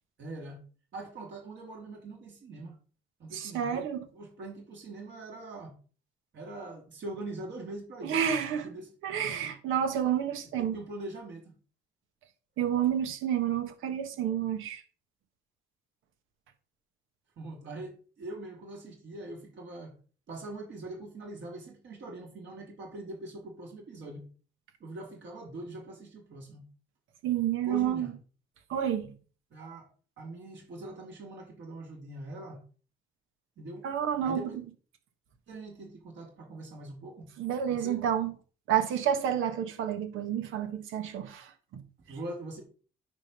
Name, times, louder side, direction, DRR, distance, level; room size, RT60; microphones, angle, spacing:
voice 1, 0.2-0.6 0.9-2.8 3.2-3.9 4.1-5.8 6.3-8.2 8.6-8.9 10.6-11.5 17.4-19.9 20.3-24.2 24.8-26.7 27.6-28.1 29.5-29.9 30.2-32.6 33.6-33.9 34.2-34.6 35.5-37.3 37.7-38.0 40.6-40.7 42.1-42.6, right 2 dB, 65° right, 3.8 m, -42 dB
voice 2, 3.3-4.1 8.0-8.7 9.0-10.8 12.6-14.8 27.2-28.1 28.7-29.1 33.8-34.5 37.4-38.3 38.7-41.8, right 9 dB, 90° right, 1.5 m, -29 dB
9.9 x 3.8 x 6.7 m
cardioid pair, 90°, 20 cm